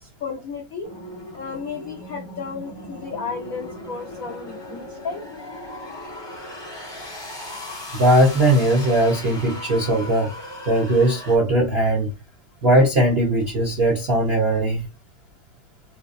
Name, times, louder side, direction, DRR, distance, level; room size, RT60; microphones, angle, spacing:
voice 1, 0.0-0.9 1.3-5.2, left 5 dB, 85° left, 0.7 m, -33 dB
sound 1, 0.8-11.4, left 1 dB, 20° left, 0.6 m, -37 dB
voice 2, 7.9-10.4 10.6-12.1 12.6-14.8, right 1 dB, 60° right, 0.6 m, -19 dB
4.0 x 2.4 x 2.5 m
omnidirectional pair, 2.4 m